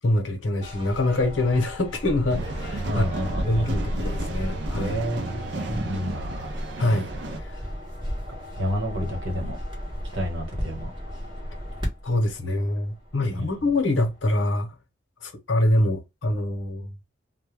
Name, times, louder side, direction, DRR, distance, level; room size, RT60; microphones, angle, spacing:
voice 1, 0.0-3.1 3.5-5.0 6.8-7.1 7.4-7.6 12.0-14.7 15.2-16.9, left 1 dB, 85° left, 0.8 m, -25 dB
sound 1, 0.6-14.2, equal, 25° right, 0.9 m, -34 dB
sound 2, 2.3-7.4, right 3 dB, 65° right, 0.4 m, -34 dB
voice 2, 2.8-3.7 4.8-6.5 8.6-9.6 10.1-10.9 13.3-13.5, equal, 85° right, 1.2 m, -30 dB
2.2 x 2.1 x 3.1 m
head